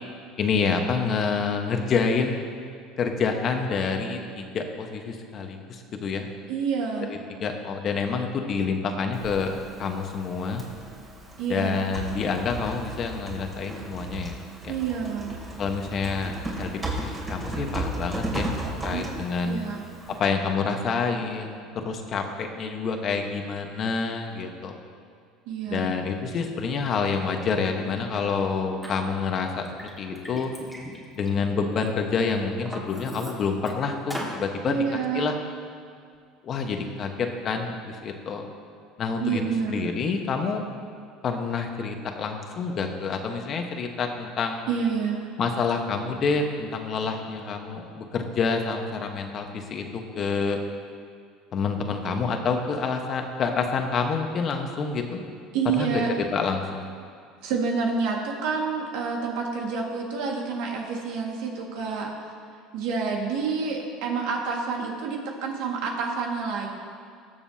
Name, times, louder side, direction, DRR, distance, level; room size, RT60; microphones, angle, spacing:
voice 1, 0.4-2.5 3.0-6.3 7.1-10.6 11.5-14.4 14.6-14.7 15.6-18.5 18.8-19.6 20.2-24.8 25.7-29.7 30.0-30.5 31.1-35.4 36.4-38.5 39.0-40.6 41.2-44.7 45.4-50.6 51.5-55.2 55.6-56.9, left 5 dB, 45° left, 4 dB, 1.2 m, -28 dB
voice 2, 6.5-7.2 11.4-11.9 14.7-15.4 18.9-19.9 25.5-26.0 34.7-35.4 39.2-39.9 44.7-45.3 55.5-56.1 57.4-62.1 62.7-66.7, right 5 dB, 75° right, 0 dB, 1.8 m, -28 dB
Typing, 9.1-20.2, right 2 dB, 25° right, 2.9 m, -35 dB
Liquid, 28.8-28.9 29.5-31.9 32.3-33.7 34.1-34.4, equal, 5° right, 1.9 m, -38 dB
20.0 x 7.0 x 2.8 m, 2.2 s
supercardioid pair, 110°, 0 cm